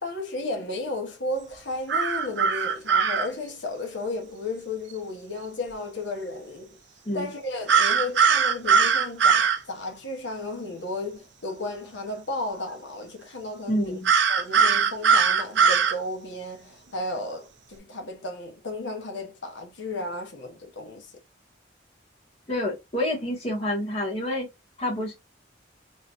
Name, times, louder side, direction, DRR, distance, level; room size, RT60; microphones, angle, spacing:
voice 1, 0.0-6.8 7.1-14.0 14.3-21.2, left 2 dB, 80° left, 1.1 m, -34 dB
sound 1, 1.9-3.3 7.7-9.6 14.0-15.9, right 6 dB, 75° right, 0.6 m, -20 dB
voice 2, 13.7-14.1 22.5-24.5 24.8-25.1, left 1 dB, 30° left, 1.8 m, -28 dB
3.8 x 3.1 x 2.5 m
head